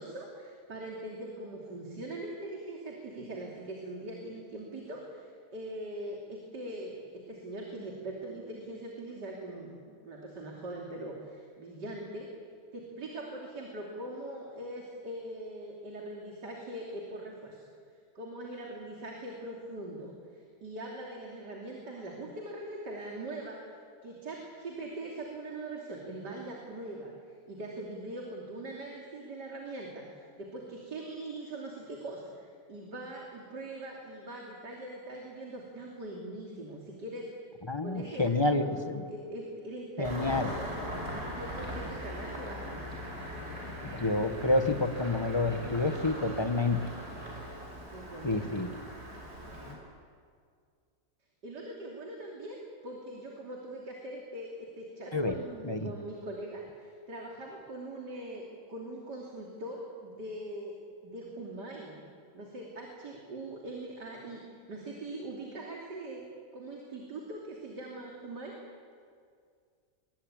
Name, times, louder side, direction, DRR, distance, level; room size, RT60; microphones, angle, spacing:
voice 1, 0.0-12.3 12.7-17.7 18.2-23.7 24.0-37.3 37.8-40.7 41.3-43.1 47.9-48.8 51.4-60.8 61.0-61.9 62.3-64.4 64.7-66.3 66.5-68.6, right 1 dB, 70° right, -1 dB, 3.6 m, -42 dB
voice 2, 37.7-39.0 40.0-40.6 43.8-46.8 48.2-48.7 55.1-55.3 55.6-55.9, left 2 dB, 15° left, 7 dB, 1.1 m, -29 dB
Engine starting, 40.0-49.7, equal, 35° right, 5.8 m, -40 dB
23.5 x 20.5 x 8.9 m, 2.1 s
omnidirectional pair, 1.9 m